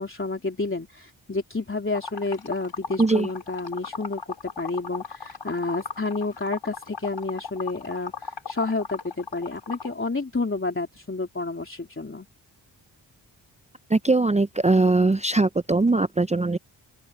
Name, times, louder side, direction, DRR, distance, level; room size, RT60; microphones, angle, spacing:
voice 1, 0.0-12.3, left 3 dB, 25° left, 3.3 m, -30 dB
Liquid, 1.9-9.9, left 5 dB, 65° left, 4.5 m, -36 dB
voice 2, 13.9-16.6, right 3 dB, 15° right, 0.6 m, -21 dB
open air
cardioid pair, 45°, 47 cm